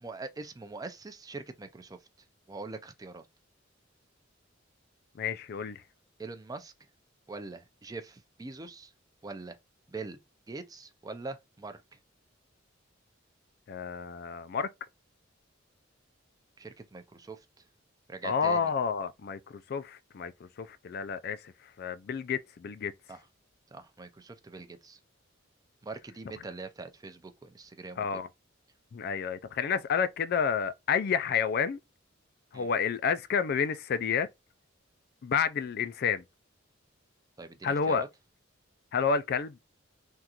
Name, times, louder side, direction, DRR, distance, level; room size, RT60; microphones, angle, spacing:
voice 1, 0.0-2.0 2.5-3.3 6.2-6.7 7.3-8.9 9.2-9.6 9.9-10.2 10.5-12.0 16.6-17.5 18.1-18.7 23.1-23.2 23.7-25.0 25.8-28.0 32.5-32.7 37.4-38.1, right 3 dB, 20° right, 0.4 m, -43 dB
voice 2, 5.2-5.8 13.7-14.7 18.2-22.9 28.0-28.3 28.9-31.8 32.5-34.3 35.2-36.2 37.6-38.0 38.9-39.6, left 6 dB, 50° left, 0.3 m, -30 dB
3.6 x 2.4 x 2.8 m
head